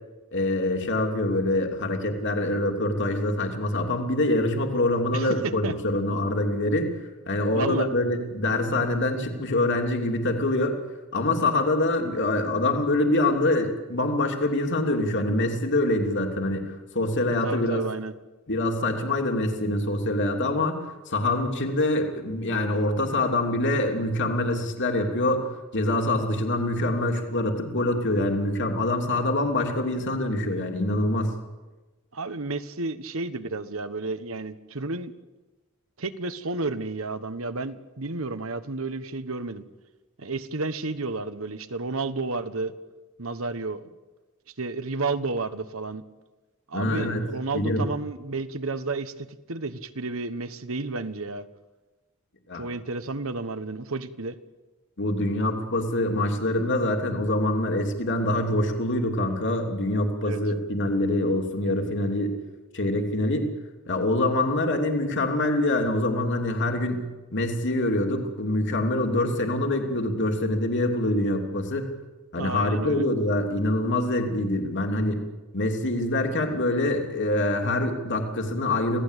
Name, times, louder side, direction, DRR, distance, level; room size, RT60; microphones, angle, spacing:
voice 1, 0.3-6.9 7.3-10.7 11.1-16.7 16.9-17.8 18.5-20.8 21.1-25.4 25.7-31.3 46.7-47.2 47.5-47.8 52.5-52.6 55.0-62.3 62.7-63.5 63.9-67.1 67.3-71.9 72.3-75.2 75.5-79.0, left 1 dB, 60° left, 3 dB, 3.1 m, -25 dB
voice 2, 5.1-5.7 7.5-7.9 17.4-18.1 32.1-35.1 36.0-39.6 40.2-42.7 43.2-43.8 44.6-46.0 46.7-51.5 52.5-54.4 60.2-60.4 72.4-73.0, right 3 dB, 70° right, 11 dB, 1.3 m, -31 dB
27.0 x 17.5 x 8.3 m, 1.2 s
head